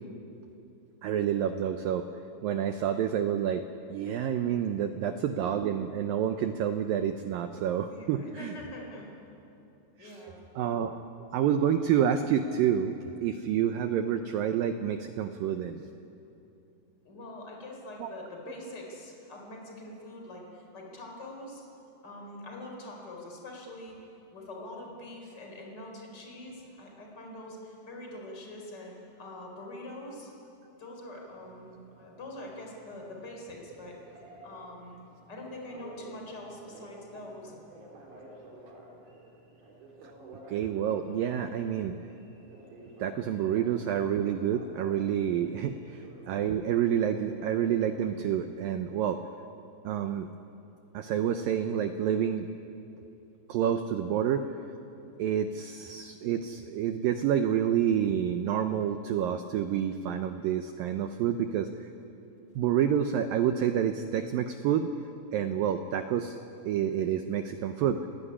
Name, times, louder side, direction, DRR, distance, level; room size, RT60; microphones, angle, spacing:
voice 1, 1.0-2.0 2.4-3.6 3.9-8.5 10.0-10.2 10.6-11.0 11.3-13.0 13.2-15.9 18.0-18.2 40.5-42.0 43.0-49.2 49.8-50.3 50.9-52.5 53.5-54.5 55.2-61.9 62.6-64.9 65.3-66.4 66.7-68.1, right 9 dB, 85° right, 7 dB, 2.0 m, -28 dB
voice 2, 7.9-9.1 10.0-10.4 17.0-21.6 22.0-24.0 24.3-30.3 30.8-34.0 34.4-35.0 35.3-37.6, left 1 dB, 25° left, 0 dB, 4.7 m, -44 dB
Telephone, 31.2-48.3, right 2 dB, 45° right, 5.3 m, -51 dB
29.0 x 17.0 x 10.0 m, 2.8 s
omnidirectional pair, 5.2 m